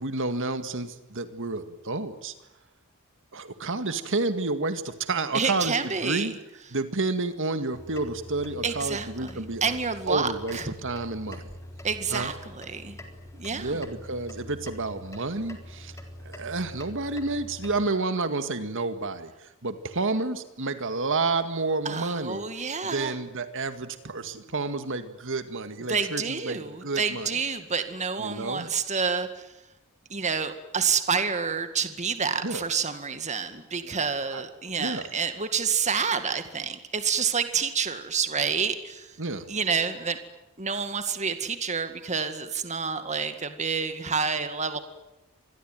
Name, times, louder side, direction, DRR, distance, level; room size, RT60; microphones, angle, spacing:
voice 1, 0.0-2.3 3.3-5.8 6.0-6.3 6.7-9.6 10.1-11.5 12.1-12.3 13.5-16.0 16.3-22.5 22.8-27.3 28.2-28.7 32.4-32.6 33.8-34.0 34.3-34.4 34.8-35.1 39.2-39.5, right 3 dB, 60° right, 9 dB, 2.0 m, -30 dB
voice 2, 5.3-6.3 8.6-10.7 11.8-13.0 13.3-13.8 21.8-23.2 25.9-29.5 30.1-39.2 39.5-40.2 40.6-44.8, right 5 dB, 30° right, 9 dB, 2.0 m, -28 dB
sound 1, 7.7-17.9, left 1 dB, 15° left, 3.8 m, -44 dB
27.0 x 21.5 x 9.2 m, 0.93 s
head